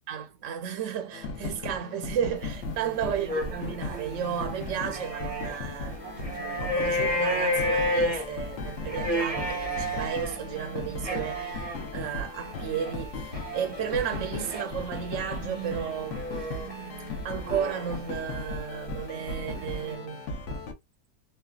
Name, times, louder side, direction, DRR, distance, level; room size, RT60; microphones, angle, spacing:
voice 1, 0.1-16.5 17.2-20.3, right 8 dB, 60° right, 0.8 m, -33 dB
sound 1, 1.1-20.7, left 3 dB, 65° left, 0.7 m, -37 dB
sound 2, 2.4-5.6 5.9-18.5 19.1-19.9, equal, 30° right, 0.7 m, -33 dB
3.1 x 2.2 x 2.3 m
omnidirectional pair, 1.8 m